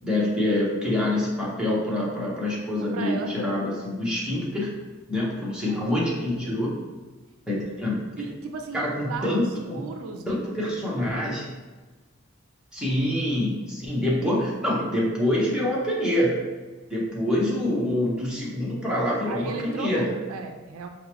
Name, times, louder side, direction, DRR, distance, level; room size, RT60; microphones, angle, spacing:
voice 1, 0.0-4.8 5.1-6.8 7.5-8.2 8.7-9.8 10.3-11.5 12.7-16.4 16.9-20.2, left 1 dB, 5° right, -6 dB, 0.8 m, -26 dB
voice 2, 2.9-3.3 5.7-6.6 8.2-9.4 9.7-11.0 19.3-20.9, right 4 dB, 80° right, 5 dB, 0.3 m, -36 dB
4.6 x 2.1 x 3.0 m, 1.3 s
head